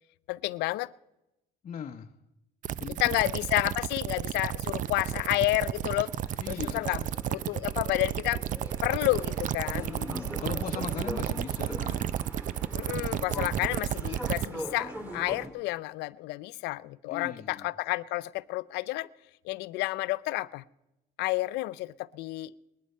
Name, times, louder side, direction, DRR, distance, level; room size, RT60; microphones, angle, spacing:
voice 1, 0.3-0.9 3.0-6.1 6.5-7.0 7.3-8.4 8.8-9.9 12.7-19.1 19.4-20.6 21.2-22.5, left 19 dB, 90° left, 18 dB, 0.5 m, -30 dB
voice 2, 1.6-2.1 2.8-3.2 6.4-7.0 9.7-12.1 15.3-15.5 17.1-17.7, left 7 dB, 40° left, 4 dB, 0.8 m, -39 dB
sound 1, 2.6-14.5, right 11 dB, 50° right, 0.5 m, -32 dB
sound 2, 4.6-15.5, equal, 10° right, 2.9 m, -43 dB
20.0 x 11.5 x 5.5 m, 0.93 s
cardioid pair, 110°, 17 cm